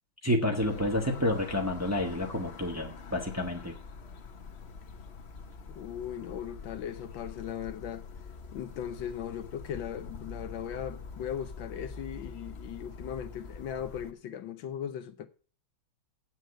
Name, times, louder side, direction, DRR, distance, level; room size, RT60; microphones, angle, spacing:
voice 1, 0.2-3.7, left 1 dB, 10° right, 1.1 m, -29 dB
sound 1, 0.6-14.1, left 4 dB, 45° left, 0.9 m, -45 dB
voice 2, 5.7-8.1 8.5-15.3, left 9 dB, 70° left, 1.5 m, -38 dB
8.3 x 7.7 x 7.8 m
omnidirectional pair, 2.2 m